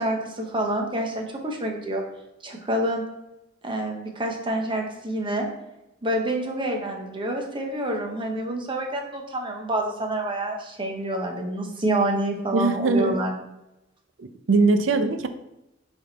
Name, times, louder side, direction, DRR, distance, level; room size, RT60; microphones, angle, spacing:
voice 1, 0.0-2.0 2.4-3.0 3.6-5.5 6.0-13.3, right 1 dB, 25° right, 2 dB, 1.0 m, -27 dB
voice 2, 12.5-13.2 14.2-15.3, right 3 dB, 80° right, 9 dB, 0.6 m, -21 dB
6.5 x 3.6 x 4.1 m, 0.91 s
head